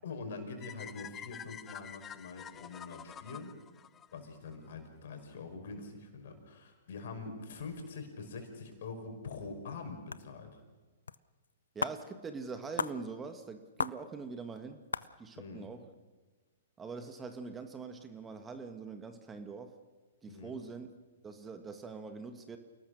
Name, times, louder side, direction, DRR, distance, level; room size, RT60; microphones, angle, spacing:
voice 1, 0.0-3.5 4.1-10.5 15.4-15.7 20.3-20.6, left 4 dB, 60° left, 5 dB, 5.4 m, -44 dB
sound 1, 0.6-4.7, left 9 dB, 20° left, 0.7 m, -48 dB
sound 2, 10.1-10.2 11.1-11.2 11.4-11.5 11.8-12.0 12.8-13.0 13.8-14.0 14.5-14.6 14.9-15.1, left 5 dB, 80° left, 0.7 m, -34 dB
voice 2, 11.7-14.8 15.2-15.9 16.8-19.8 20.2-20.9 21.2-22.6, right 4 dB, 15° right, 7 dB, 1.7 m, -43 dB
28.5 x 19.0 x 6.6 m, 1.3 s
figure-of-eight pair, 115°, 0 cm